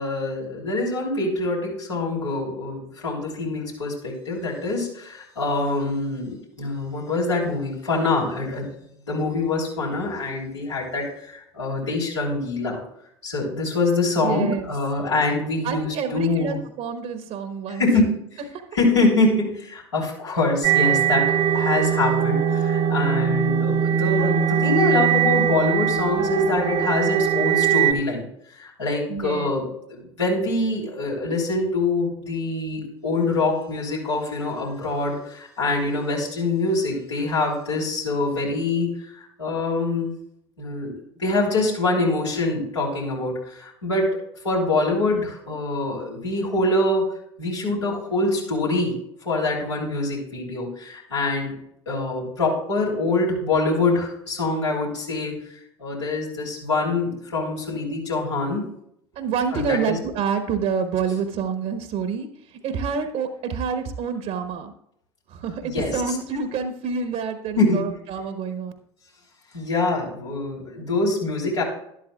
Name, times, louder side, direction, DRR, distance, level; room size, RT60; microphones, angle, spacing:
voice 1, 0.0-8.7 9.1-12.8 13.2-16.6 17.8-18.2 18.7-28.3 28.5-40.1 40.6-44.2 44.4-47.0 47.4-49.0 49.2-51.6 51.8-55.4 55.8-58.6 59.5-60.0 65.7-66.1 67.6-67.8 69.5-71.6, left 2 dB, 90° left, -5 dB, 3.4 m, -24 dB
voice 2, 14.2-14.7 15.6-17.9 18.5-18.6 29.1-29.5 59.1-64.7 65.3-68.7, right 6 dB, 55° right, 8 dB, 1.2 m, -27 dB
sound 1, 20.6-27.9, right 8 dB, 35° right, 0.9 m, -21 dB
12.0 x 11.0 x 2.4 m, 0.72 s
hypercardioid pair, 70°, 15 cm